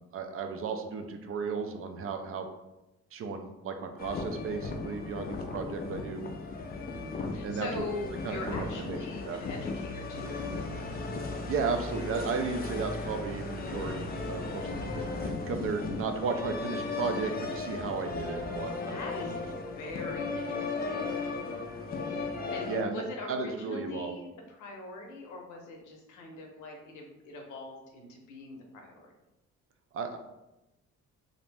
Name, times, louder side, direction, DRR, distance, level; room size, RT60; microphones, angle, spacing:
voice 1, 0.0-2.5 3.1-6.2 7.4-7.9 8.2-9.0 9.3-9.4 11.5-19.0 19.3-19.4 22.7-23.0 23.3-24.1 29.9-30.2, right 5 dB, 50° right, 6 dB, 0.4 m, -34 dB
sound 1, 4.0-22.8, left 3 dB, 30° left, 0.4 m, -36 dB
voice 2, 5.1-6.0 6.8-10.5 15.8-16.0 18.9-21.3 22.5-29.1, left 2 dB, 80° left, 1 dB, 0.7 m, -42 dB
2.5 x 2.0 x 3.2 m, 0.97 s
cardioid pair, 90°, 30 cm